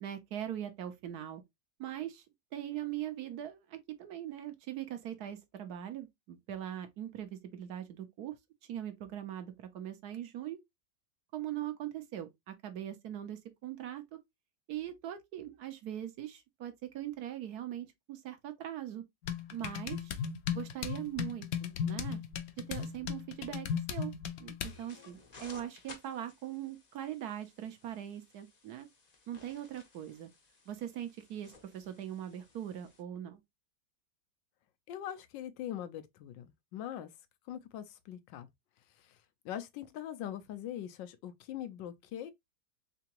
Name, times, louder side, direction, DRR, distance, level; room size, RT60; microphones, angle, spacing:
voice 1, 0.0-1.4 1.8-2.2 2.5-8.3 8.6-10.6 11.3-14.2 14.7-19.0 19.5-20.2 20.5-22.2 22.7-24.1 24.4-28.9 29.3-30.3 30.7-33.4, right 11 dB, 65° right, 1.1 m, -41 dB
sound 1, 19.2-24.8, left 8 dB, 65° left, 0.9 m, -37 dB
sound 2, 24.6-33.0, left 4 dB, 40° left, 0.6 m, -57 dB
voice 2, 34.9-37.1 37.5-38.5 38.9-42.3, left 11 dB, 90° left, 1.4 m, -42 dB
3.8 x 3.4 x 2.8 m
omnidirectional pair, 1.9 m